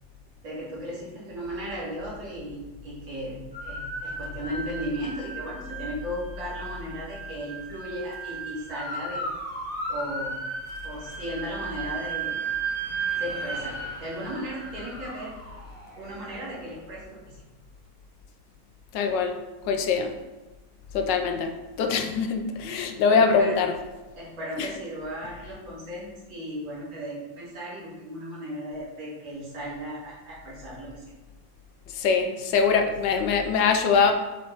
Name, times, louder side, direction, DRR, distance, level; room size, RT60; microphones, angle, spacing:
voice 1, 0.4-9.3 9.9-10.4 10.8-12.5 13.2-15.4 16.0-17.4 23.0-23.6 24.2-31.1, equal, 85° right, -7 dB, 2.8 m, -36 dB
sound 1, 3.5-16.6, right 4 dB, 30° right, 1.5 m, -35 dB
voice 2, 18.9-19.4 19.6-20.1 20.9-23.7 24.6-24.7 31.9-34.2, left 5 dB, 70° left, 5 dB, 1.3 m, -23 dB
7.4 x 4.3 x 4.3 m, 1.2 s
omnidirectional pair, 2.1 m